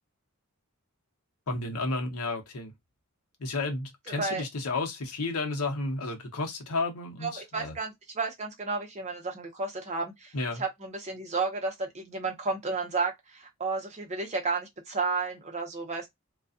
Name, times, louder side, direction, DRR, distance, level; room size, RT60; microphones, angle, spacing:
voice 1, 1.5-2.7 3.4-7.7 10.3-10.6, left 3 dB, 75° left, 0.8 m, -32 dB
voice 2, 4.1-4.4 7.2-16.1, right 4 dB, 30° right, 0.8 m, -32 dB
2.4 x 2.3 x 2.4 m
head